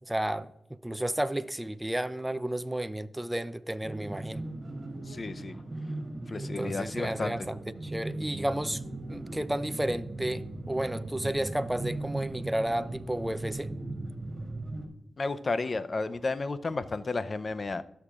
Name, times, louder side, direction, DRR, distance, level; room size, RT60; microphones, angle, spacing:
voice 1, 0.0-4.4 6.4-8.8 9.1-13.7, right 1 dB, 10° right, 0.6 m, -32 dB
sound 1, 3.8-14.9, right 2 dB, 40° right, 2.9 m, -38 dB
voice 2, 5.1-5.6 6.3-7.3 15.2-17.8, left 3 dB, 50° left, 0.6 m, -32 dB
16.0 x 6.8 x 2.5 m
cardioid pair, 45°, 0 cm